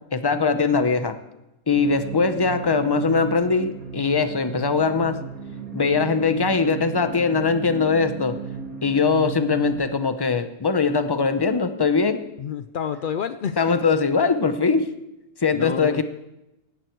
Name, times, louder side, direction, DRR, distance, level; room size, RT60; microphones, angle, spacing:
voice 1, 0.1-1.1 1.7-5.2 5.7-8.4 8.8-12.2 13.6-14.9 15.4-16.0, left 4 dB, 25° left, 9 dB, 0.6 m, -21 dB
sound 1, 1.7-9.7, right 6 dB, 75° right, 2.7 m, -35 dB
voice 2, 12.4-13.6 15.5-16.0, left 8 dB, 80° left, 11 dB, 0.4 m, -29 dB
16.5 x 11.5 x 4.6 m, 0.93 s
omnidirectional pair, 1.5 m